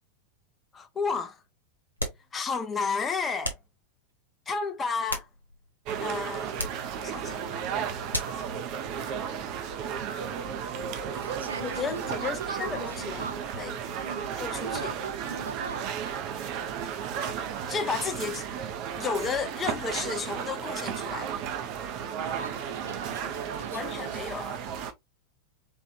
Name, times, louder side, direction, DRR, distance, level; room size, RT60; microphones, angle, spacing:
voice 1, 0.7-1.4 2.3-3.6 4.5-5.3 6.0-6.6 6.9-7.5 11.7-13.8 14.4-14.9 17.7-18.5 19.0-21.4 23.7-24.6, left 5 dB, 20° left, 0.6 m, -32 dB
sound 1, 2.0-2.3 3.4-3.7 4.8-5.7 6.5-6.9 8.1-8.5, equal, 90° left, 1.0 m, -34 dB
sound 2, 5.9-24.9, right 8 dB, 40° right, 0.7 m, -34 dB
voice 2, 11.2-13.4 14.0-14.3 14.6-16.2 22.1-24.4, right 4 dB, 75° right, 0.8 m, -39 dB
4.4 x 3.3 x 2.6 m
figure-of-eight pair, 90°, 0 cm